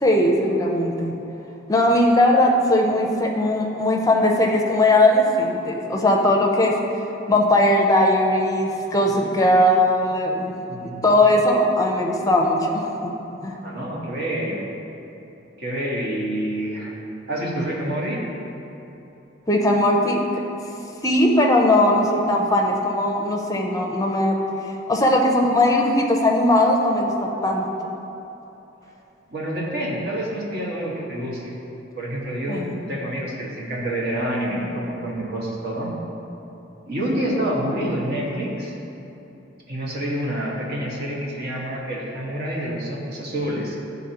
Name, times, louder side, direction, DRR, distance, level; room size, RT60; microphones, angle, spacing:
voice 1, 0.0-1.1 1.7-6.7 7.3-10.5 11.0-13.1 13.4-13.6 19.5-20.2 21.0-24.4 24.9-27.7 32.5-32.9, left 1 dB, 20° left, 0 dB, 0.6 m, -19 dB
voice 2, 10.7-11.2 13.6-14.6 15.6-16.9 17.3-18.2 29.3-31.5 31.9-35.9 36.9-38.8 39.7-43.7, right 1 dB, 55° right, -4 dB, 1.3 m, -27 dB
10.5 x 4.0 x 2.9 m, 3.0 s
head